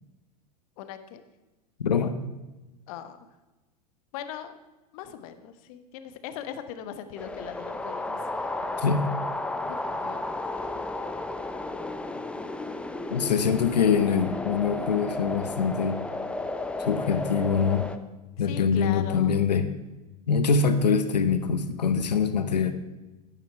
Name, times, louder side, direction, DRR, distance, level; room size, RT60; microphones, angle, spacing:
voice 1, 0.8-1.2 2.9-3.2 4.1-4.6 4.9-8.5 9.6-10.7 18.4-19.4, left 9 dB, 60° left, 10 dB, 1.2 m, -40 dB
voice 2, 1.8-2.2 8.8-9.1 13.1-16.0 16.8-17.9 18.4-19.7 20.3-22.7, left 6 dB, 90° left, 10 dB, 0.9 m, -24 dB
sound 1, 7.2-18.0, left 2 dB, 5° left, 0.7 m, -33 dB
12.0 x 9.0 x 4.6 m, 1.1 s
hypercardioid pair, 95°, 21 cm